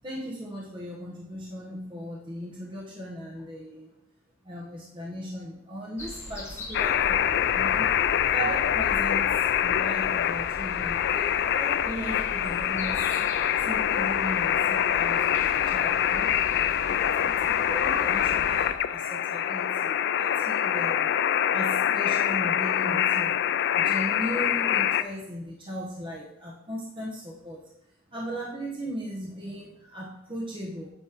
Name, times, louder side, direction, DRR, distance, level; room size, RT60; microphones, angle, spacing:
voice 1, 0.0-3.9 4.4-7.9 8.3-13.1 13.6-16.3 16.8-21.1 21.5-23.3 23.8-27.6 28.1-30.9, equal, 25° right, -4 dB, 1.0 m, -37 dB
sound 1, 6.0-18.7, equal, 15° left, 1.4 m, -41 dB
sound 2, 6.7-25.0, left 10 dB, 60° left, 0.3 m, -25 dB
9.0 x 3.1 x 6.0 m, 0.86 s
head